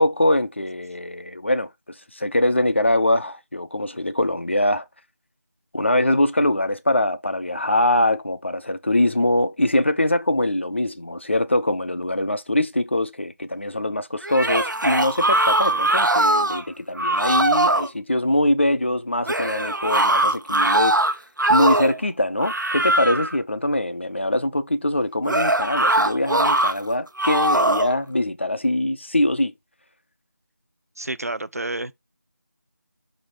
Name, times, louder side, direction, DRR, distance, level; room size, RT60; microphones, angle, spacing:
voice 1, 0.0-1.7 2.1-4.8 5.7-21.0 21.5-29.5, left 1 dB, 35° left, 0.5 m, -23 dB
sound 1, 14.2-16.6 17.0-17.9 19.3-22.0 22.4-23.4 25.3-26.7 27.2-27.9, right 1 dB, 80° right, 1.1 m, -21 dB
voice 2, 31.0-31.9, right 2 dB, 50° right, 0.5 m, -30 dB
6.0 x 4.0 x 4.7 m
figure-of-eight pair, 175°, 10 cm